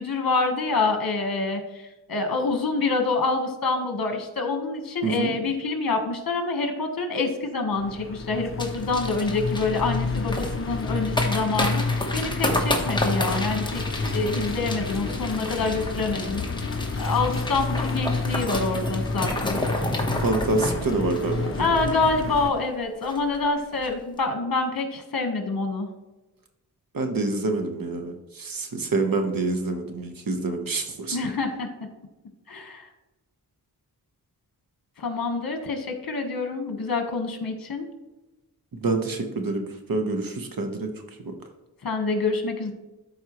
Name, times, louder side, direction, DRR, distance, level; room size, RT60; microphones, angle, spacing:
voice 1, 0.0-1.8 2.1-16.4 17.0-19.6 21.6-25.9 31.1-31.7 32.5-32.9 35.0-37.8 41.8-42.7, left 3 dB, 65° left, 5 dB, 1.5 m, -26 dB
voice 2, 5.0-5.3 20.2-21.6 26.9-31.2 38.7-39.6 39.9-40.9 41.2-41.3, right 3 dB, 65° right, 5 dB, 1.3 m, -27 dB
sound 1, 7.7-22.5, left 3 dB, 35° left, 0.7 m, -30 dB
sound 2, 8.6-22.4 22.7-22.8 23.0-23.4 23.7-23.9, left 1 dB, 10° left, 1.2 m, -31 dB
12.5 x 4.6 x 3.1 m, 1.0 s
wide cardioid pair, 110°, 38 cm